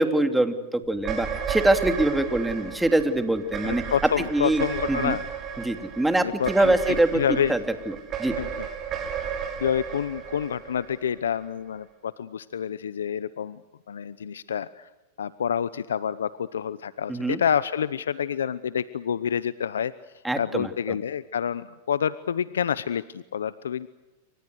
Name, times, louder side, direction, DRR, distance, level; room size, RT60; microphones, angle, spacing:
voice 1, 0.0-3.8 4.3-5.2 5.6-7.2 7.5-7.6 7.9-8.3 17.1-17.4 20.2-21.0, right 1 dB, 5° right, 7 dB, 2.9 m, -24 dB
sound 1, 0.9-11.4, right 7 dB, 35° right, 6.5 m, -34 dB
voice 2, 3.6-5.2 6.2-7.5 8.4-8.7 9.6-13.6 13.9-14.9 15.2-19.9 20.4-23.9, left 8 dB, 85° left, 16 dB, 0.8 m, -28 dB
28.5 x 25.5 x 6.5 m, 1.1 s
hypercardioid pair, 110°, 0 cm